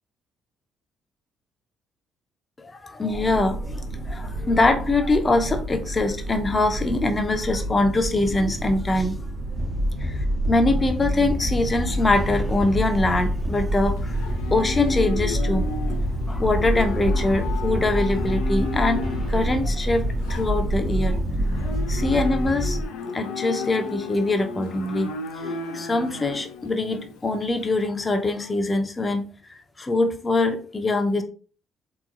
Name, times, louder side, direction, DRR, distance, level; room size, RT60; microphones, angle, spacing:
voice 1, 2.6-9.2 10.0-10.2 10.5-14.1 14.5-15.7 16.3-21.2 21.6-22.8 23.1-25.1 25.4-25.5 25.7-29.2 29.8-31.2, left 2 dB, 30° left, 6 dB, 0.6 m, -23 dB
sound 1, 3.1-22.2, right 1 dB, 70° right, 0.7 m, -31 dB
sound 2, 9.5-22.8, equal, 35° right, 0.7 m, -27 dB
Livestock farm animals working animals, 13.1-27.8, left 4 dB, 75° left, 0.4 m, -34 dB
3.7 x 3.0 x 2.4 m, 0.40 s
hypercardioid pair, 45°, 0 cm